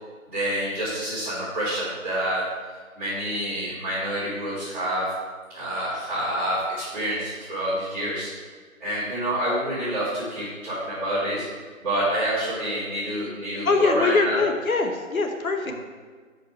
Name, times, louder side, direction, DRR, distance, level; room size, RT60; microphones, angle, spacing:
voice 1, 0.3-2.5 2.9-5.1 5.5-8.3 8.8-14.4, right 1 dB, 5° right, -20 dB, 1.9 m, -27 dB
voice 2, 13.6-15.7, left 4 dB, 80° left, 4 dB, 1.1 m, -23 dB
6.2 x 5.2 x 5.1 m, 1.6 s
figure-of-eight pair, 175°, 41 cm